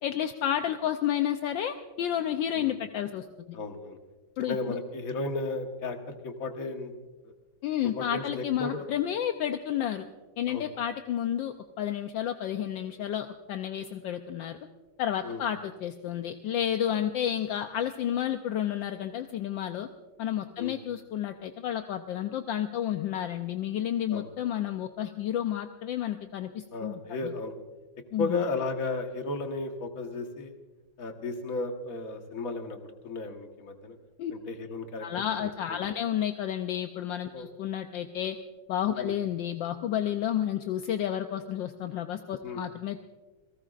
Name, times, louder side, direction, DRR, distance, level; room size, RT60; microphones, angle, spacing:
voice 1, 0.0-3.2 4.4-4.8 7.6-10.0 10.4-14.7 15.0-19.9 20.2-27.3 28.1-28.4 34.2-34.3 35.0-38.4 38.7-43.0, left 10 dB, 75° left, 7 dB, 1.3 m, -31 dB
voice 2, 3.5-4.0 4.4-6.9 7.8-8.8 10.5-10.7 15.2-15.4 16.9-17.0 20.6-20.8 24.1-24.3 26.7-27.5 28.2-30.5 31.0-33.9 34.3-35.1 35.4-35.8 37.3-37.5 38.9-39.2 42.4-42.6, left 3 dB, 45° left, 4 dB, 1.7 m, -34 dB
28.5 x 18.0 x 2.5 m, 1.2 s
omnidirectional pair, 2.2 m